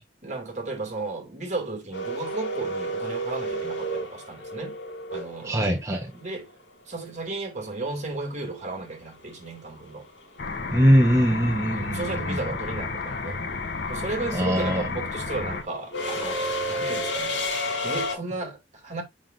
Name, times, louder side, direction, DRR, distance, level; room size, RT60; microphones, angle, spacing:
voice 1, 0.2-4.8 5.1-5.7 6.1-6.5 6.9-10.1 11.6-13.4 13.9-17.4 17.8-19.0, right 3 dB, 40° right, 2.6 m, -34 dB
sound 1, 1.9-6.0 8.4-8.5 9.8-10.1 10.4-18.1, equal, 90° left, 3.0 m, -31 dB
voice 2, 5.4-6.1 10.7-12.0 12.3-12.4 14.3-14.9, equal, 15° right, 1.1 m, -21 dB
sound 2, 10.4-15.6, left 4 dB, 60° left, 1.0 m, -32 dB
7.2 x 5.9 x 2.6 m
head